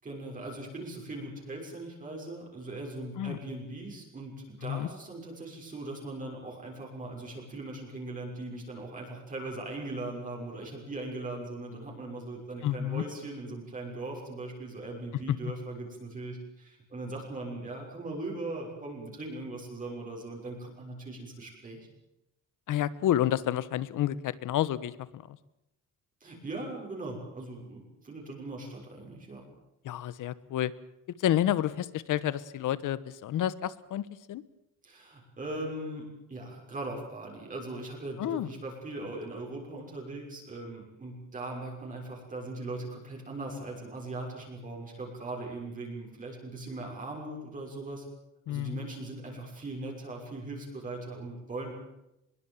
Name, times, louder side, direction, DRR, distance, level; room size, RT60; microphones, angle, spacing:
voice 1, 0.0-21.9 26.2-29.4 34.8-48.0 48.5-51.7, right 2 dB, 25° right, -1 dB, 6.5 m, -39 dB
voice 2, 12.6-13.0 15.3-15.4 22.7-25.4 29.8-30.7 31.2-34.4 38.2-38.5 48.5-48.8, left 12 dB, 80° left, 17 dB, 1.3 m, -30 dB
24.0 x 22.5 x 7.5 m, 0.87 s
cardioid pair, 180°, 31 cm